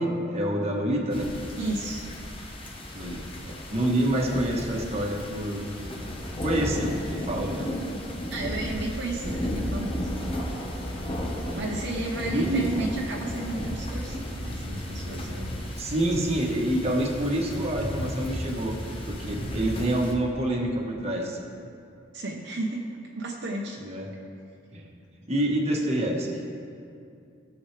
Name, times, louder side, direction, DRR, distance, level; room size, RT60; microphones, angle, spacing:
voice 1, 0.0-1.3 2.9-5.7 6.4-7.7 11.4-11.6 12.3-12.7 15.8-18.8 19.0-21.4 23.8-24.1 24.7-24.9 25.3-26.3, right 1 dB, 35° right, -1 dB, 1.3 m, -27 dB
sound 1, 1.1-20.1, equal, 30° left, 1.2 m, -34 dB
voice 2, 1.6-2.1 8.3-10.1 11.6-15.9 22.1-22.8 23.1-23.8, right 2 dB, 60° right, -1 dB, 0.9 m, -33 dB
17.5 x 7.1 x 3.3 m, 2.5 s
head